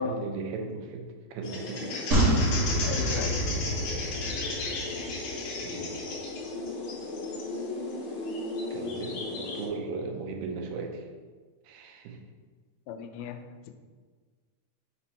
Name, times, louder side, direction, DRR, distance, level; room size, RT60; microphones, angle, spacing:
voice 1, 0.0-1.9 5.6-6.1 8.7-11.0 11.7-12.2, right 4 dB, 80° right, 3 dB, 2.4 m, -37 dB
sound 1, 1.4-9.7, left 3 dB, 65° left, 2.2 m, -34 dB
sound 2, 2.1-5.5 5.8-5.9, right 1 dB, 60° right, 0.9 m, -28 dB
voice 2, 2.6-3.4 12.9-13.4 13.7-13.8, left 6 dB, 80° left, 6 dB, 1.9 m, -35 dB
6.0 x 4.4 x 4.1 m, 1.5 s
omnidirectional pair, 4.0 m